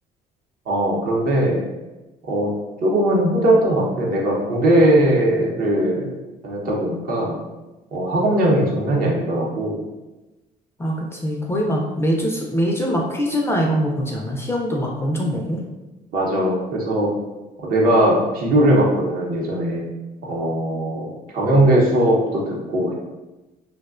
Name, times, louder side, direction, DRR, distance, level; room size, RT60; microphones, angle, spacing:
voice 1, 0.7-1.6 2.3-2.5 2.8-6.1 6.4-7.4 7.9-9.8 16.1-17.1 17.6-19.8 20.2-22.9, right 1 dB, 60° right, -2 dB, 0.7 m, -19 dB
voice 2, 8.2-8.6 10.8-15.6, equal, 15° left, -1 dB, 0.3 m, -23 dB
2.4 x 2.1 x 2.4 m, 1.1 s
cardioid pair, 110°, 17 cm